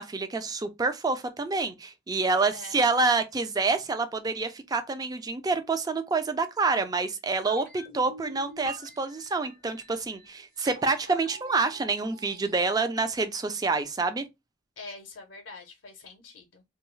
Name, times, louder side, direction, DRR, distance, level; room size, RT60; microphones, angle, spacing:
voice 1, 0.0-14.2, right 3 dB, 20° right, 0.3 m, -27 dB
sound 1, 7.5-13.5 13.8-13.9, right 3 dB, 45° right, 1.0 m, -46 dB
voice 2, 14.8-16.6, left 3 dB, 80° left, 0.5 m, -45 dB
2.3 x 2.2 x 3.0 m
head